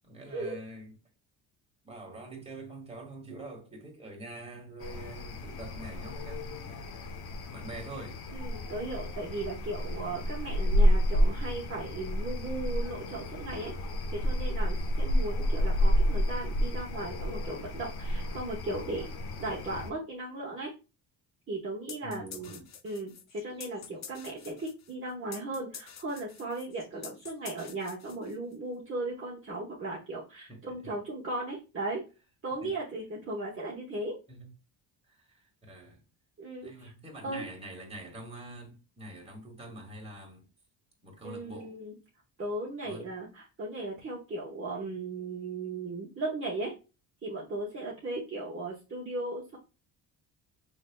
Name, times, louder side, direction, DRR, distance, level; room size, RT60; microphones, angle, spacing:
voice 1, 0.0-0.9 1.8-6.8 7.5-8.2 22.0-22.6 30.5-30.6 32.6-32.7 34.3-34.5 35.0-36.0 36.6-40.5 41.0-41.8 42.8-43.1, right 2 dB, 15° right, 1.9 m, -45 dB
sound 1, 4.8-19.9, equal, 60° left, 1.1 m, -30 dB
voice 2, 8.3-13.7 14.1-19.1 19.4-20.7 21.5-32.0 32.4-34.2 36.4-36.9 37.2-37.4 41.2-41.9 42.4-46.7 47.2-49.6, right 2 dB, 30° right, 1.3 m, -37 dB
sound 2, 21.9-28.6, left 8 dB, 40° left, 0.6 m, -47 dB
6.2 x 3.3 x 2.3 m
cardioid pair, 105°, 43 cm